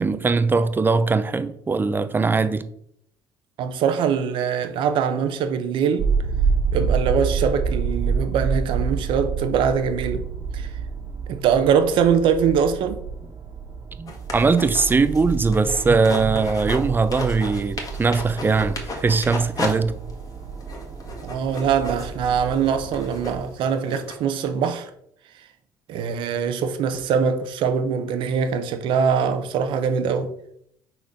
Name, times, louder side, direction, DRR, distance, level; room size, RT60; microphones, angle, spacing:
voice 1, 0.0-2.6 14.0-20.0, right 4 dB, 20° right, 0.6 m, -21 dB
voice 2, 3.6-6.1 6.7-10.3 10.5-10.7 11.3-13.0 21.2-24.9 25.9-30.3, right 7 dB, 65° right, 0.8 m, -22 dB
sound 1, 6.0-23.4, right 5 dB, 45° right, 1.4 m, -28 dB
sound 2, 14.1-16.8 17.1-19.7 20.1-20.2 20.6-24.2, left 3 dB, 40° left, 1.6 m, -34 dB
4.5 x 4.2 x 5.1 m
supercardioid pair, 80°, 9 cm